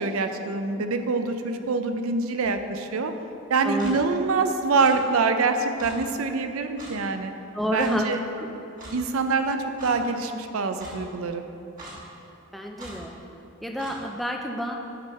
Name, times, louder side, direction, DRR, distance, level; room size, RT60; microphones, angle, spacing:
voice 1, 0.0-3.1 3.5-7.3 7.7-8.2 8.9-11.4, right 4 dB, 85° right, 7 dB, 0.5 m, -25 dB
voice 2, 3.6-4.0 7.5-8.1 8.4-8.5 12.5-13.1 13.6-14.7, equal, ahead, 1 dB, 0.5 m, -29 dB
Clock, 3.8-3.9 4.8-4.9 5.8-5.9 6.8-6.9 7.8-7.9 8.8-9.0 9.8-9.9 10.8-10.9 11.8-12.0 12.8-12.9 13.8-13.9, right 2 dB, 40° right, 1.4 m, -41 dB
8.8 x 5.5 x 4.2 m, 2.9 s
head